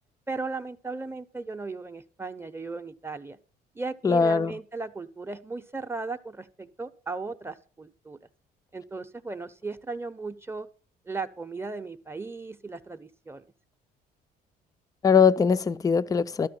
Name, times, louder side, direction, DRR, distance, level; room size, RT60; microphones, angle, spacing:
voice 1, 0.3-3.4 3.7-8.3 8.7-10.7 11.1-13.4, right 3 dB, 15° right, 0.7 m, -36 dB
voice 2, 4.0-4.6 15.0-16.5, left 6 dB, 20° left, 0.5 m, -21 dB
13.0 x 4.8 x 8.5 m
cardioid pair, 110°, 17 cm